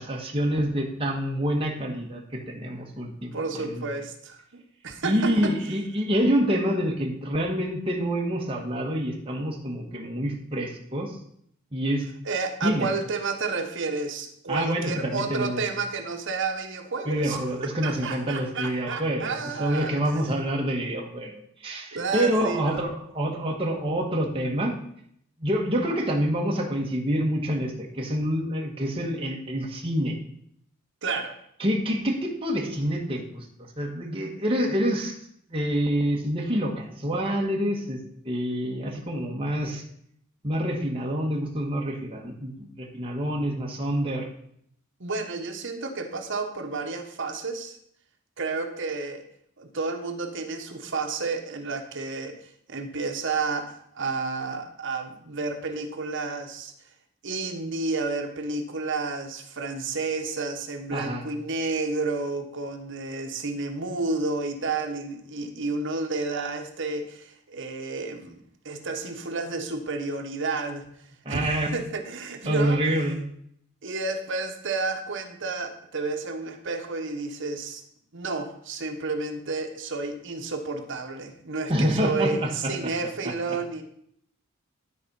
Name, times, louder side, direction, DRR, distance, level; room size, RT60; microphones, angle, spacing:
voice 1, 0.0-3.8 5.0-11.2 11.7-12.0 12.6-12.9 14.5-15.6 17.1-19.3 19.6-24.8 25.4-30.2 31.6-33.4 33.8-35.1 35.5-39.8 40.4-44.3 60.9-61.2 71.2-71.8 72.5-73.3 81.7-82.9, equal, 25° right, -1 dB, 1.4 m, -27 dB
voice 2, 3.3-5.5 12.2-17.4 17.8-20.3 21.9-22.8 31.0-31.4 45.0-47.8 48.4-49.2 49.6-56.7 57.2-70.9 71.3-72.9 73.8-77.8 78.1-83.8, right 3 dB, 60° right, 4 dB, 1.1 m, -31 dB
12.0 x 4.3 x 5.5 m, 0.69 s
head